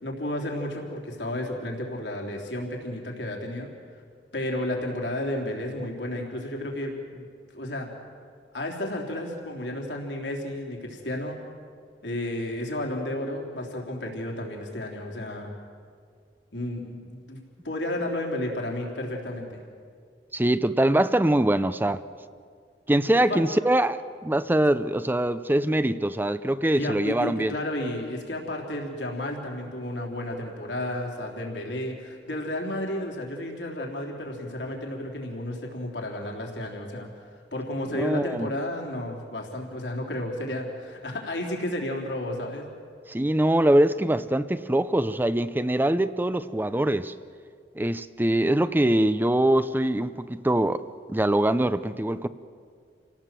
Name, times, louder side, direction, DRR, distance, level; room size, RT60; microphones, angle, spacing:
voice 1, 0.0-3.7 4.3-7.2 7.5-7.9 8.5-11.4 12.0-15.5 16.5-19.6 23.3-23.4 26.7-37.1 37.5-42.7, left 1 dB, 75° left, 0 dB, 3.6 m, -32 dB
voice 2, 20.3-22.0 22.9-27.5 37.9-38.5 43.1-47.1 47.8-50.8 51.1-52.3, right 1 dB, 10° right, 13 dB, 0.5 m, -23 dB
28.0 x 18.0 x 7.6 m, 2.1 s
head